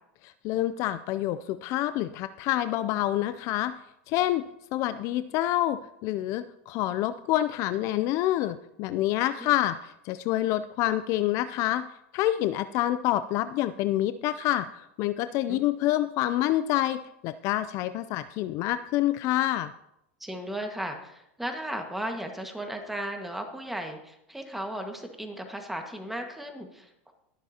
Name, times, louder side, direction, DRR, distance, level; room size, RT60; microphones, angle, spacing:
voice 1, 0.2-3.7 4.1-4.4 4.7-11.8 12.1-19.7, left 14 dB, 50° left, 13 dB, 0.4 m, -27 dB
voice 2, 20.2-27.1, right 1 dB, 5° right, 3 dB, 1.6 m, -36 dB
21.0 x 7.3 x 2.8 m, 0.82 s
supercardioid pair, 125°, 7 cm